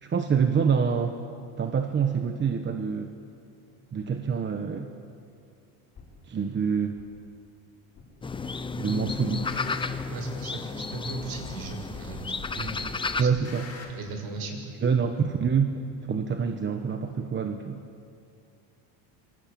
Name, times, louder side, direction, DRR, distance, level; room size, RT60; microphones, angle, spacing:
voice 1, 0.0-1.1 1.6-3.1 3.9-4.9 6.3-7.0 8.8-9.5 13.2-13.7 14.8-15.8 16.1-17.8, right 6 dB, 20° right, 5 dB, 1.2 m, -26 dB
sound 1, 5.9-6.1 7.0-7.1 8.0-8.4 8.7-10.2 11.0-11.1 12.0-12.4 12.7-13.9, left 4 dB, 30° left, 6.3 m, -45 dB
sound 2, 8.2-13.2, left 4 dB, 10° left, 0.7 m, -33 dB
voice 2, 10.1-12.8 13.2-13.5 13.9-14.7, right 3 dB, 45° right, 4 dB, 6.2 m, -37 dB
26.5 x 24.0 x 8.8 m, 2.5 s
cardioid pair, 150°, 49 cm